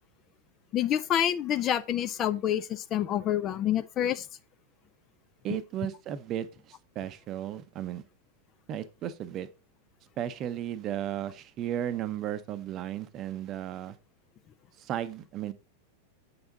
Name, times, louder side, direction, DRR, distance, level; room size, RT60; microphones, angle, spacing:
voice 1, 0.7-4.3, left 11 dB, 30° left, 0.5 m, -27 dB
voice 2, 5.4-8.0 8.7-9.5 10.2-14.0 14.8-15.5, right 11 dB, 35° right, 0.7 m, -35 dB
7.8 x 5.7 x 3.9 m
figure-of-eight pair, 90°, 0 cm